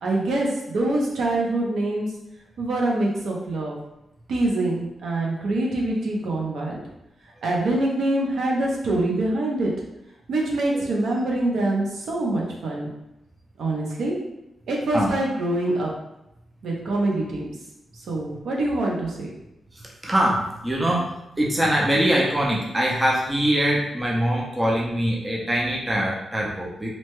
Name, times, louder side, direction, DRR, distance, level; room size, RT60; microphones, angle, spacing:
voice 1, 0.0-2.1 2.6-3.8 4.3-6.8 7.4-9.7 10.3-12.9 13.6-14.1 14.7-15.9 16.6-17.5 17.9-19.3, right 2 dB, 80° right, -2 dB, 0.7 m, -25 dB
voice 2, 19.7-26.9, equal, 15° right, -3 dB, 0.5 m, -23 dB
2.8 x 2.2 x 3.0 m, 0.89 s
wide cardioid pair, 120°, 0 cm